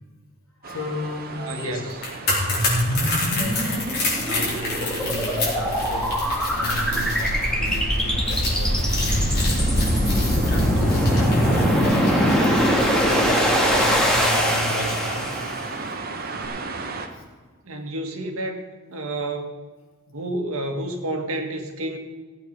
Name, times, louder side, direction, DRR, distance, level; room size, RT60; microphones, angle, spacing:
voice 1, 0.6-1.8 2.5-2.8 3.3-6.2 6.6-12.7 13.2-15.5 17.1-17.2, left 1 dB, 65° left, -1 dB, 3.1 m, -33 dB
sound 1, 0.6-17.1, right 3 dB, 45° right, 1.1 m, -36 dB
voice 2, 1.4-2.0 17.6-18.6 18.9-19.5 20.1-22.0, right 1 dB, 70° right, 4 dB, 1.7 m, -30 dB
sound 2, 1.9-15.1 15.3-15.5, left 2 dB, 45° left, 4.2 m, -30 dB
sound 3, 2.3-15.7, equal, 5° left, 1.9 m, -22 dB
16.0 x 8.5 x 5.3 m, 1.4 s
head